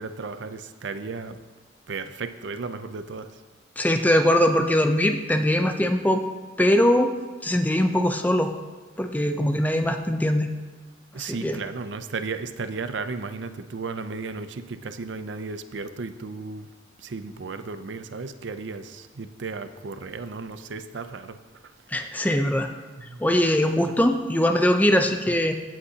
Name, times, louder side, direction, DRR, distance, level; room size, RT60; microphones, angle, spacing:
voice 1, 0.0-1.4 1.9-3.3 9.8-10.0 11.1-16.7 17.0-21.4 23.1-23.2, right 4 dB, 80° right, 10 dB, 0.6 m, -34 dB
voice 2, 3.8-6.3 6.6-7.1 7.4-8.5 9.0-10.5 11.2-11.6 21.9-22.7 23.2-25.5, left 1 dB, 10° left, 5 dB, 0.5 m, -21 dB
16.0 x 8.1 x 2.8 m, 1.3 s
head